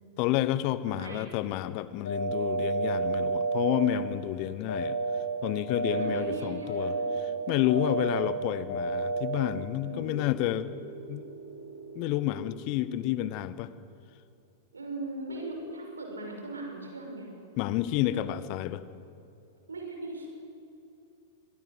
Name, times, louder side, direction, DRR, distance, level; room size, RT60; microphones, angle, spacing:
voice 1, 0.2-5.0 5.4-10.7 11.1-11.3 11.9-13.7 17.6-18.8, left 14 dB, 40° left, 15 dB, 1.1 m, -30 dB
voice 2, 0.9-1.3 4.3-4.4 5.8-7.1 7.6-8.0 9.8-10.3 14.7-17.3 18.1-18.4 19.7-20.3, right 2 dB, 75° right, 2 dB, 5.9 m, -40 dB
sound 1, 2.0-3.7 4.7-5.2 5.7-6.2 6.7-7.2 7.7-8.2 8.7-9.2 10.0-12.3 15.3-15.5, right 3 dB, 70° left, 6.5 m, -31 dB
24.5 x 19.5 x 8.1 m, 2.8 s
figure-of-eight pair, 95°, 0 cm